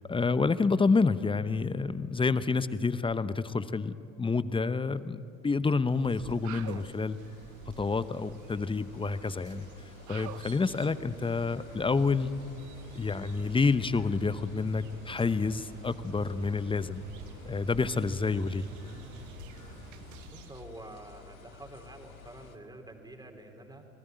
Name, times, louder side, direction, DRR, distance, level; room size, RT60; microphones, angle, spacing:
voice 1, 0.0-7.2 7.8-9.7 10.1-12.3 12.9-17.0 17.5-18.6, left 4 dB, 15° left, 15 dB, 0.8 m, -28 dB
sound 1, 5.6-22.6, left 6 dB, 85° left, 2.0 m, -53 dB
sound 2, 5.9-20.8, right 12 dB, 45° right, 1.1 m, -50 dB
sound 3, 11.5-20.2, right 2 dB, 75° right, 7.2 m, -50 dB
voice 2, 20.3-23.9, right 1 dB, 10° right, 4 dB, 3.5 m, -48 dB
26.0 x 19.0 x 9.2 m, 2.8 s
figure-of-eight pair, 70°, 40 cm